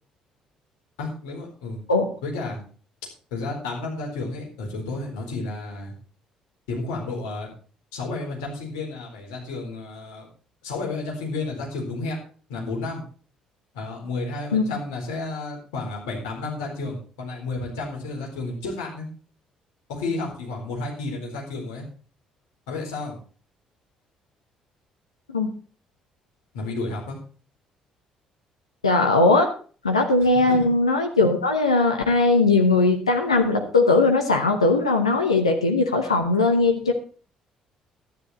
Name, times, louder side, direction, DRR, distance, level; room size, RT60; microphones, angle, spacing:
voice 1, 1.0-1.8 2.2-2.6 3.3-5.9 6.7-7.5 7.9-10.3 10.6-12.2 12.5-13.0 13.7-19.1 19.9-21.9 22.7-23.2 26.5-27.2 30.5-30.6, left 3 dB, 70° left, -1 dB, 4.1 m, -31 dB
voice 2, 28.8-29.5 29.8-36.9, left 3 dB, 85° left, 3 dB, 1.0 m, -19 dB
12.5 x 10.0 x 4.3 m, 0.40 s
figure-of-eight pair, 45°, 3 cm